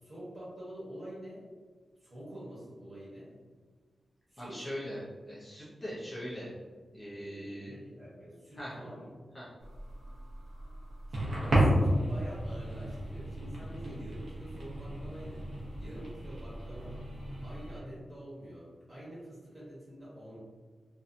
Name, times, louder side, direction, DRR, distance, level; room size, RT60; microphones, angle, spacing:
voice 1, 0.0-1.4 1.9-3.3 4.3-4.6 7.1-9.1 11.1-15.5 15.8-17.0 17.4-20.4, right 1 dB, 35° right, -9 dB, 1.2 m, -46 dB
voice 2, 4.4-6.5 6.9-7.7 8.5-8.7 9.3-9.5, equal, 20° left, -8 dB, 0.6 m, -41 dB
sound 1, 9.6-17.8, right 1 dB, 60° right, 0.8 m, -33 dB
2.7 x 2.2 x 2.5 m, 1.5 s
wide cardioid pair, 175°, 0 cm